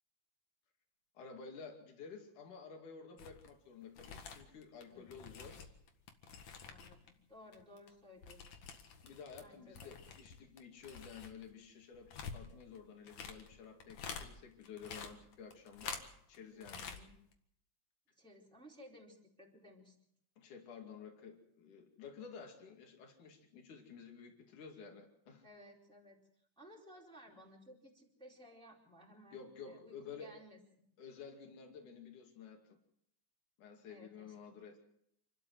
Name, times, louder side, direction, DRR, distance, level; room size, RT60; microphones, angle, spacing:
voice 1, 1.2-5.7 9.0-16.0 16.3-16.9 20.4-25.4 29.3-30.4 31.0-32.8 33.6-34.8, left 6 dB, 85° left, 3 dB, 4.0 m, -52 dB
sound 1, 3.2-3.5 3.8-7.1 7.3-9.5 9.7-14.3 14.6-16.4 16.6-17.0 17.3-17.4, left 6 dB, 65° left, 3.0 m, -48 dB
voice 2, 4.9-5.4 6.7-8.6 9.0-9.1 9.4-10.0 16.5-17.2 18.2-19.9 25.4-26.2 26.6-30.9 33.9-34.6, left 1 dB, ahead, -2 dB, 4.1 m, -58 dB
28.0 x 13.0 x 7.9 m, 0.74 s
omnidirectional pair, 3.5 m